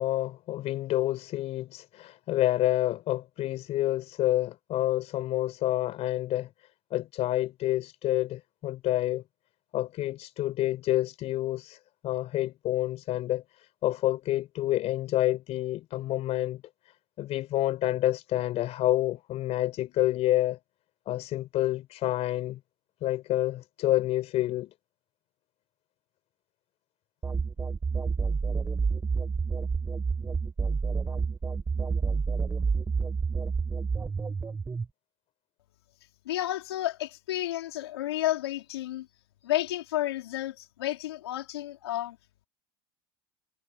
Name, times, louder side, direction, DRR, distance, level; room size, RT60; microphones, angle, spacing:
voice 1, 0.0-6.5 6.9-9.2 9.7-16.6 17.2-20.6 21.1-22.6 23.0-24.7, left 14 dB, 55° left, 5.3 m, -28 dB
sound 1, 27.2-34.8, right 5 dB, 20° right, 1.6 m, -29 dB
voice 2, 36.3-39.1 39.4-42.2, left 14 dB, 90° left, 3.4 m, -31 dB
hypercardioid pair, 85°, 13 cm